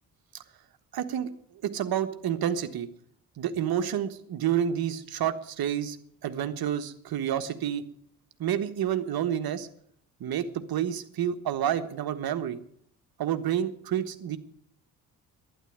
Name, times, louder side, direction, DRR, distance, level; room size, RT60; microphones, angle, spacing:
voice 1, 0.9-1.3 1.6-2.9 3.4-6.0 6.2-7.8 8.4-9.7 10.2-12.6 13.2-14.4, right 9 dB, 55° right, 10 dB, 1.4 m, -29 dB
11.5 x 10.5 x 9.4 m, 0.65 s
hypercardioid pair, 50°, 44 cm